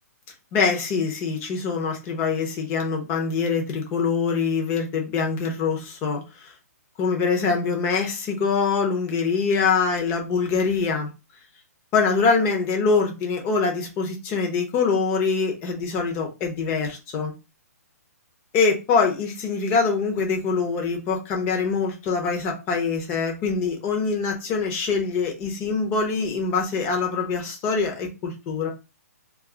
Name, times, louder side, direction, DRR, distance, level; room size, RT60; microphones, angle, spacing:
voice 1, 0.5-6.5 7.0-11.1 11.9-17.3 18.5-28.7, left 5 dB, 25° left, 0.8 m, -24 dB
2.6 x 2.4 x 3.6 m
hypercardioid pair, 150°, 9 cm